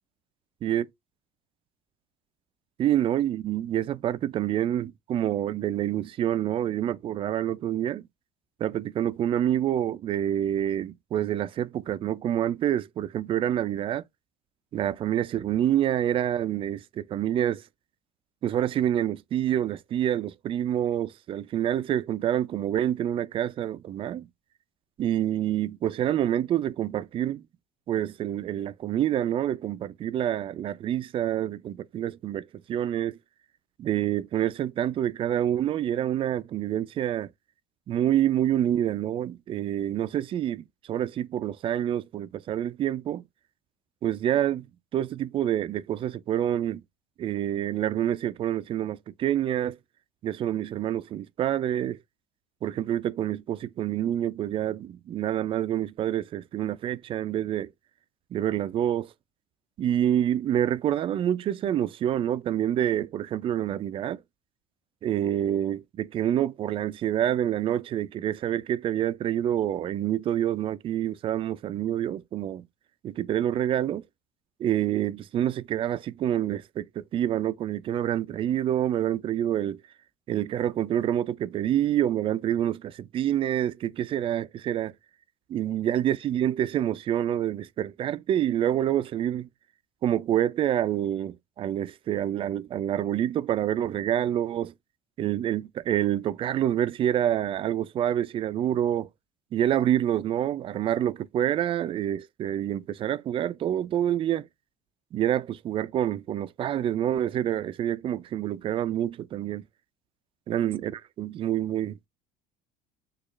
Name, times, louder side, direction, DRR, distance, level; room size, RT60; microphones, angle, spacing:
voice 1, 2.8-8.0 8.6-14.0 14.7-17.6 18.4-24.3 25.0-27.4 27.9-33.2 33.8-37.3 37.9-43.2 44.0-44.7 44.9-46.8 47.2-49.8 50.2-52.0 52.6-57.7 58.3-59.1 59.8-64.2 65.0-72.6 73.0-74.0 74.6-79.8 80.3-84.9 85.5-89.5 90.0-94.7 95.2-99.1 99.5-104.5 105.1-109.6 110.5-112.0, right 11 dB, 40° right, 0.4 m, -27 dB
6.3 x 2.4 x 3.1 m
supercardioid pair, 110°, 14 cm